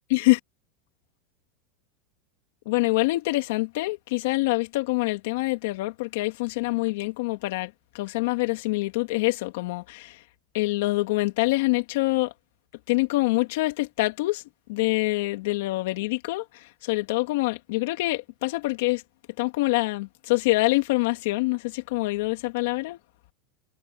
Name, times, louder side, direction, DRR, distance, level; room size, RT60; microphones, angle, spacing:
voice 1, 2.6-10.2 10.5-12.3 12.9-14.4 14.7-19.0 19.4-23.0, left 21 dB, 60° left, 3.2 m, -25 dB
supercardioid pair, 165°, 0 cm